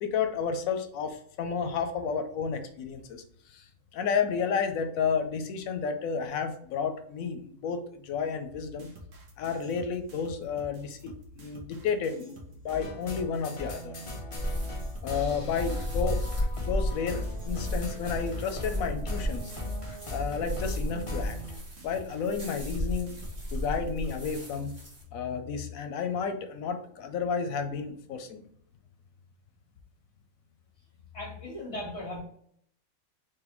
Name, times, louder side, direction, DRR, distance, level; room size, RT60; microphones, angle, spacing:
voice 1, 0.0-8.9 9.4-12.4 12.6-14.0 15.0-16.2 16.7-19.5 20.1-21.4 21.8-23.2 23.5-24.7 25.1-28.4, left 6 dB, 90° left, 7 dB, 1.0 m, -31 dB
sound 1, 8.5-24.4, equal, 70° right, 1.2 m, -49 dB
sound 2, 12.7-21.6, left 2 dB, 35° left, 0.6 m, -37 dB
sound 3, 14.4-25.0, equal, 35° right, 1.6 m, -35 dB
voice 2, 31.1-32.2, left 1 dB, 55° left, -2 dB, 1.8 m, -37 dB
3.9 x 3.1 x 3.0 m, 0.65 s
omnidirectional pair, 1.4 m